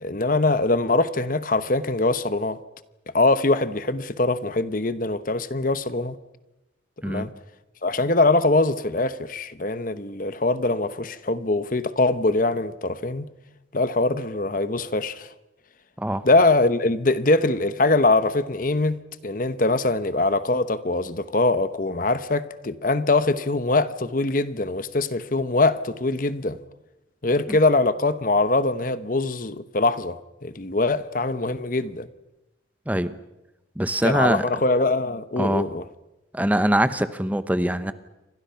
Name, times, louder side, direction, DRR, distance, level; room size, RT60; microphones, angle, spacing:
voice 1, 0.0-2.6 3.1-6.2 7.0-7.3 7.8-13.3 13.7-15.3 16.2-26.6 27.2-32.1 34.0-35.8, left 2 dB, 45° left, 1.0 m, -23 dB
voice 2, 32.9-33.2 33.8-34.4 35.4-35.7 36.3-37.9, right 1 dB, 10° right, 0.9 m, -23 dB
29.0 x 25.0 x 5.8 m
head